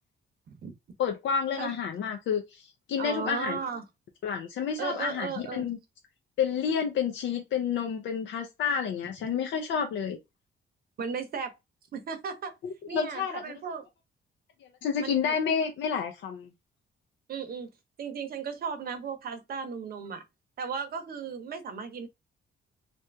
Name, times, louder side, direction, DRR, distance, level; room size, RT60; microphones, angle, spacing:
voice 1, 1.0-3.6 4.2-5.8 6.4-10.2 12.9-13.4 14.6-16.5, left 7 dB, 70° left, 0.6 m, -30 dB
voice 2, 3.0-3.8 4.8-5.7 11.0-11.6 11.9-12.5 12.9-13.9 15.0-15.4 17.3-17.7 18.0-20.2 20.6-22.1, right 6 dB, 50° right, 0.7 m, -35 dB
2.7 x 2.5 x 3.3 m
cardioid pair, 145°, 20 cm